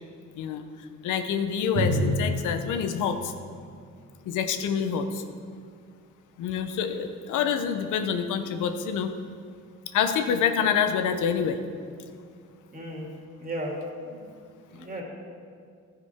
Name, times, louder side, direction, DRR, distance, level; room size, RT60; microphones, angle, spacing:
voice 1, 1.0-3.3 4.3-5.2 6.4-9.2 9.9-11.6, left 7 dB, 85° left, 8 dB, 0.8 m, -26 dB
Drum, 1.8-5.3, equal, 70° right, 1.8 m, -31 dB
voice 2, 12.7-13.1 13.4-14.3 14.7-15.0, equal, 30° right, -2 dB, 2.5 m, -35 dB
12.0 x 9.9 x 3.6 m, 2.2 s
cardioid pair, 90°, 30 cm